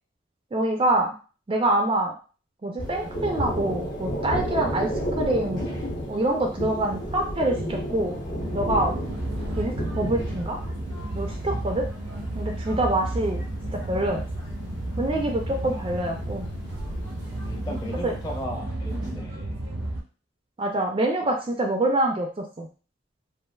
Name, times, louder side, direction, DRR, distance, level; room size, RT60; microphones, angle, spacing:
voice 1, 0.5-1.1 1.5-2.1 2.6-5.7 6.1-8.2 8.5-8.9 9.6-10.6 11.1-11.9 12.4-13.4 13.7-14.2 15.0-16.5 18.0-18.1 20.6-22.7, right 1 dB, 25° right, 2 dB, 0.3 m, -25 dB
Thunder, 2.8-18.3, equal, 60° left, 0.7 m, -33 dB
sound 1, 8.4-20.0, right 1 dB, 85° right, 0.7 m, -32 dB
voice 2, 17.4-19.6 21.2-21.3, equal, 20° left, -1 dB, 0.6 m, -36 dB
3.2 x 2.3 x 2.2 m, 0.37 s
head